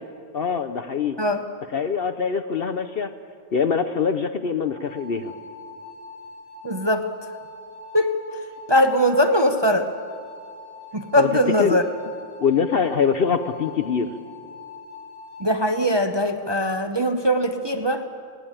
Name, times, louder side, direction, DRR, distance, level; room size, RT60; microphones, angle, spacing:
voice 1, 0.3-1.2 1.7-3.1 3.5-5.3 11.2-11.3 11.6-11.8 12.4-14.1, left 6 dB, 55° left, 8 dB, 0.7 m, -23 dB
sound 1, 4.6-15.9, left 4 dB, 45° right, 8.4 m, -42 dB
voice 2, 6.6-7.1 7.9-8.4 8.7-9.9 10.9-11.8 15.4-18.0, equal, 25° right, 5 dB, 0.6 m, -21 dB
18.5 x 16.5 x 8.8 m, 2.2 s
omnidirectional pair, 1.5 m